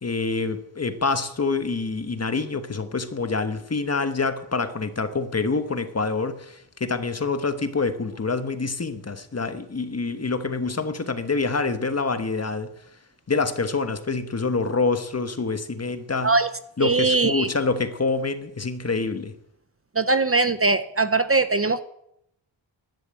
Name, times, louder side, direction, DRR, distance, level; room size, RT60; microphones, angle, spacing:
voice 1, 0.0-12.7 13.3-16.3 16.8-19.3, left 4 dB, 30° left, 1.3 m, -26 dB
voice 2, 16.8-17.5 20.0-21.8, right 3 dB, 30° right, 0.7 m, -21 dB
11.5 x 11.0 x 8.9 m
wide cardioid pair, 110°, 48 cm